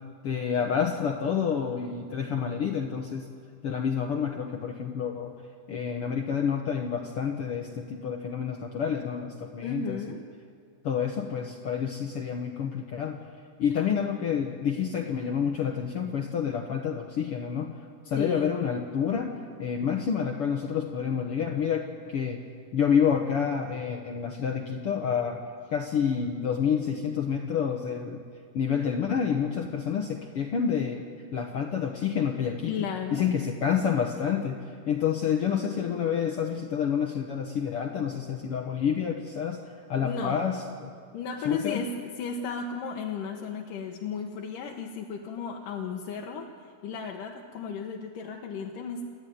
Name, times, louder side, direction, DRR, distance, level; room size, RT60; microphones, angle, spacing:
voice 1, 0.2-3.3 3.6-5.3 5.7-10.0 10.8-13.2 13.6-17.8 18.1-22.4 22.7-25.4 25.7-28.2 28.5-31.0 31.3-39.6 39.9-40.9 41.4-41.9, left 7 dB, 60° left, 3 dB, 1.7 m, -28 dB
voice 2, 9.6-10.2 18.2-18.5 32.7-33.3 40.0-40.5 41.1-46.5 46.8-49.1, left 5 dB, 90° left, 1 dB, 2.9 m, -34 dB
28.5 x 13.0 x 9.4 m, 2.3 s
omnidirectional pair, 3.7 m